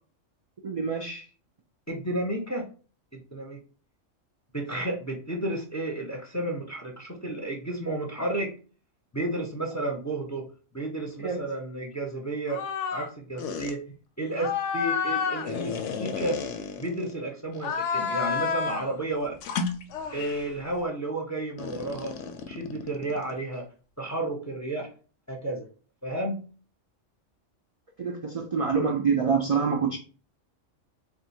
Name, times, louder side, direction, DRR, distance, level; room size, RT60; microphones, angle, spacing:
voice 1, 0.6-1.3 11.2-11.4 28.0-30.0, right 5 dB, 55° right, 0.4 m, -26 dB
voice 2, 1.9-2.7 3.1-3.6 4.5-8.5 9.1-10.5 10.7-12.6 12.9-13.8 14.2-16.4 16.8-19.4 20.1-22.2 22.5-23.7 24.0-24.9 25.3-25.7 26.0-26.4, right 2 dB, 15° left, 0.6 m, -32 dB
sound 1, 12.5-13.1 13.4-13.7 14.3-17.1 17.5-18.9 19.4-20.5 21.6-23.4, left 6 dB, 70° left, 0.8 m, -31 dB
3.5 x 2.5 x 4.2 m
omnidirectional pair, 1.3 m